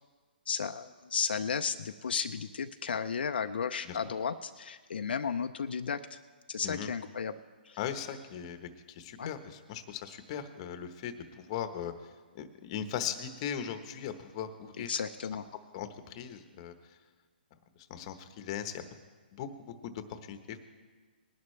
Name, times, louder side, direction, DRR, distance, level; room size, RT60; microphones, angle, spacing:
voice 1, 0.5-6.2 6.5-7.3 7.6-7.8 9.2-9.3 14.9-15.4, left 6 dB, 75° left, 7 dB, 0.6 m, -34 dB
voice 2, 7.8-11.9 12.3-14.9 15.7-17.0 17.9-18.9 19.3-20.6, left 9 dB, 35° left, 9 dB, 1.0 m, -39 dB
20.5 x 11.0 x 3.2 m, 1.4 s
hypercardioid pair, 155°, 5 cm